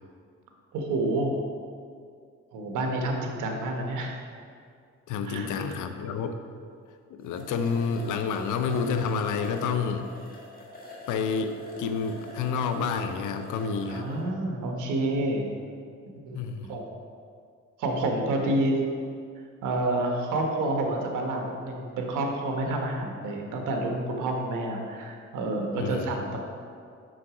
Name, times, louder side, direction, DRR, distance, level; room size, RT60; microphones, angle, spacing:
voice 1, 0.7-1.3 2.5-4.1 5.2-5.5 13.9-15.5 16.3-16.4 16.7-16.8 17.8-18.8 19.6-26.4, right 2 dB, 85° right, 2 dB, 1.2 m, -28 dB
voice 2, 5.1-6.4 7.1-10.1 11.1-14.1 16.3-16.8 25.7-26.2, left 5 dB, 80° left, 8 dB, 0.6 m, -29 dB
sound 1, 6.9-7.0 7.2-14.2, left 1 dB, 30° left, 1.8 m, -44 dB
6.3 x 5.8 x 4.9 m, 2.3 s
cardioid pair, 90°, 30 cm